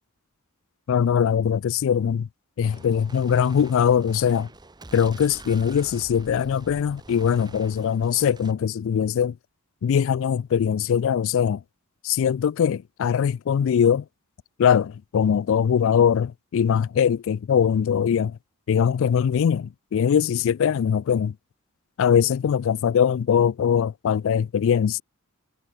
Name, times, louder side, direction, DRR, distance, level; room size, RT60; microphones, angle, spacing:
voice 1, 0.9-2.3 2.6-4.5 4.9-9.4 9.8-11.6 12.0-14.0 14.6-18.4 18.7-21.3 22.0-25.0, left 8 dB, 65° left, 0.3 m, -21 dB
Gunshot gunfire, 2.6-8.5, right 2 dB, 20° right, 1.0 m, -45 dB
head